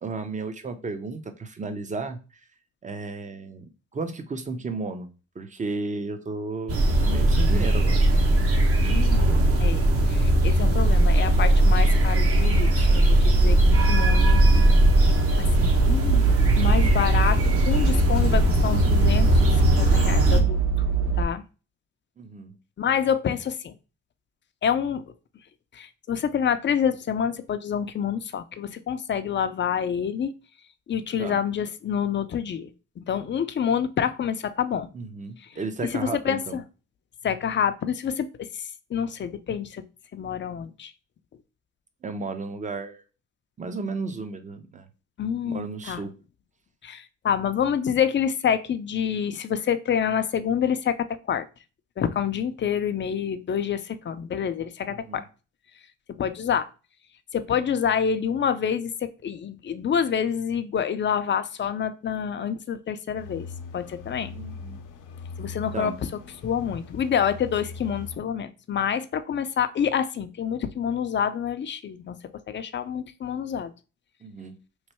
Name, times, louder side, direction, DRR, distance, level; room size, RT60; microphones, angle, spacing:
voice 1, 0.0-2.2 2.8-5.1 5.4-8.0 22.2-22.5 31.2-31.4 34.9-36.6 42.0-43.0 43.6-44.9 45.4-46.1 54.8-55.2 64.3-64.8 65.7-66.0 74.2-74.5, right 3 dB, 25° right, 9 dB, 0.7 m, -33 dB
sound 1, 6.7-20.4, right 1 dB, 50° right, 1.0 m, -19 dB
voice 2, 8.8-14.7 15.4-16.2 16.6-20.9 21.1-21.4 22.8-23.7 24.6-25.0 25.7-30.3 30.9-32.7 33.0-34.9 35.4-36.6 37.2-39.8 40.1-40.9 45.2-46.0 46.8-51.5 52.0-55.3 56.1-56.7 57.3-63.5 63.7-64.3 65.4-66.1 66.4-72.2 72.5-73.7, left 8 dB, 40° left, 10 dB, 0.5 m, -27 dB
sound 2, 12.7-21.2, right 4 dB, 65° right, 1.6 m, -25 dB
sound 3, 63.1-68.2, left 4 dB, 80° left, 0.7 m, -40 dB
3.2 x 2.6 x 4.3 m, 0.33 s
cardioid pair, 90°, 30 cm